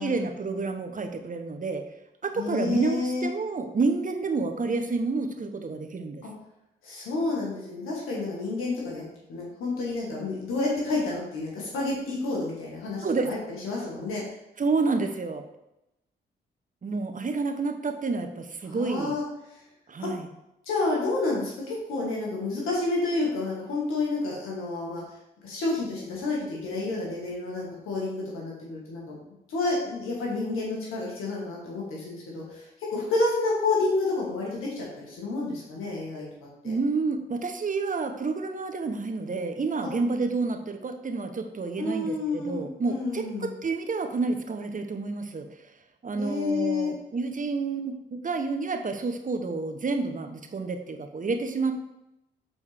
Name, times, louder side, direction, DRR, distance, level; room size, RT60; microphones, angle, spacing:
voice 1, 0.0-1.8 2.2-6.2 13.0-13.3 14.6-15.4 16.8-19.2 19.9-20.3 36.6-45.5 46.0-51.8, right 3 dB, 40° right, 6 dB, 0.9 m, -29 dB
voice 2, 2.4-3.3 6.2-6.3 6.8-9.0 9.3-14.2 18.6-19.6 20.0-20.1 20.7-25.0 25.4-29.2 29.5-32.7 32.9-36.3 36.6-36.7 39.8-39.9 41.8-43.5 46.2-46.9, left 3 dB, 90° left, -4 dB, 1.7 m, -29 dB
7.3 x 4.5 x 3.4 m, 0.89 s
supercardioid pair, 55°, 21 cm